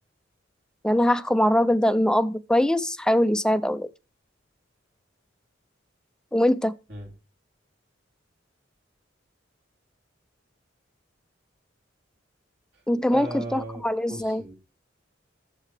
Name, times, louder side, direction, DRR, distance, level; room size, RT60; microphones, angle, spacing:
voice 1, 0.8-3.9 6.3-6.7 12.9-14.4, left 1 dB, 5° left, 0.5 m, -22 dB
voice 2, 13.1-14.5, right 1 dB, 60° right, 3.5 m, -37 dB
13.0 x 7.7 x 4.9 m
head